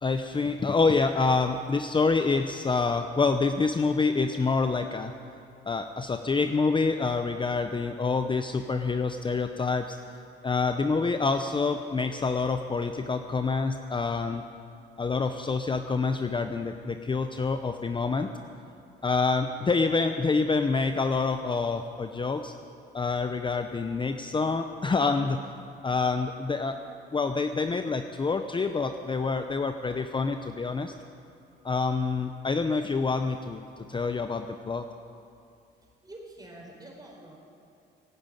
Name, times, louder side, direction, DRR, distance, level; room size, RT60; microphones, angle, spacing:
voice 1, 0.0-5.1 5.7-10.0 10.4-14.4 15.0-18.3 19.0-22.5 22.9-25.4 25.8-26.8 27.1-30.9 31.6-33.6 33.9-34.9, left 4 dB, 25° left, 7 dB, 0.7 m, -27 dB
voice 2, 35.8-37.4, right 1 dB, 20° right, 0 dB, 4.6 m, -47 dB
16.5 x 9.6 x 9.0 m, 2.5 s
cardioid pair, 90°, 20 cm